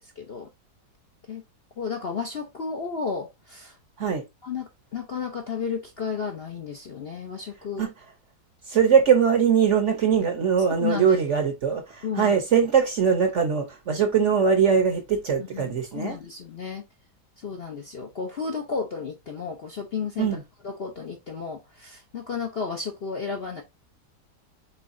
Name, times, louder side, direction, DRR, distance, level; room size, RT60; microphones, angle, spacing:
voice 1, 0.2-0.5 1.3-1.4 1.8-3.8 4.4-7.9 10.8-11.2 12.0-12.4 15.4-16.8 17.4-20.3 20.6-23.6, left 5 dB, 50° left, 0.7 m, -33 dB
voice 2, 8.7-16.2 20.2-20.4, right 7 dB, 50° right, 1.0 m, -21 dB
5.5 x 3.8 x 2.5 m
omnidirectional pair, 1.9 m